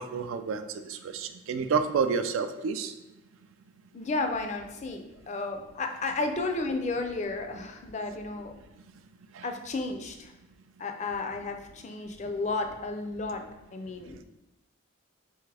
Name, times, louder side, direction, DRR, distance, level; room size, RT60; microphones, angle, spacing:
voice 1, 0.0-2.9 9.3-9.4, right 5 dB, 75° right, 9 dB, 0.4 m, -29 dB
voice 2, 3.9-8.5 9.4-10.3 10.8-13.4 13.7-14.2, left 3 dB, 35° left, 5 dB, 0.4 m, -33 dB
4.1 x 3.5 x 3.3 m, 0.98 s
head